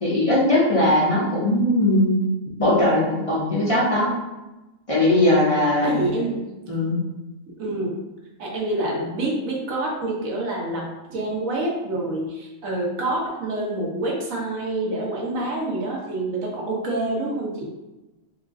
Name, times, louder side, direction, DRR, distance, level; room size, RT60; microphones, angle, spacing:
voice 1, 0.0-2.2 2.6-4.1 4.9-6.1 6.7-6.9, left 1 dB, 25° left, -8 dB, 1.0 m, -19 dB
voice 2, 5.1-5.5 5.8-6.4 7.6-8.0 8.4-17.6, right 2 dB, 80° right, -3 dB, 1.4 m, -27 dB
4.3 x 2.4 x 3.7 m, 1.0 s
omnidirectional pair, 1.4 m